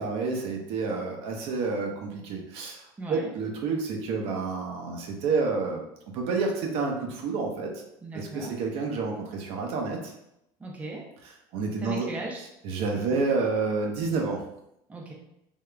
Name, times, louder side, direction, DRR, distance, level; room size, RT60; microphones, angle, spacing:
voice 1, 0.0-2.8 3.1-5.8 6.1-7.7 8.1-10.1 11.5-12.1 12.6-14.4, right 4 dB, 60° right, 1 dB, 0.7 m, -29 dB
voice 2, 3.0-3.3 8.0-8.6 10.6-11.1 11.8-12.4 12.9-13.2 14.9-15.1, right 2 dB, 10° right, -2 dB, 0.6 m, -38 dB
3.5 x 2.4 x 3.2 m, 0.81 s
cardioid pair, 145°, 11 cm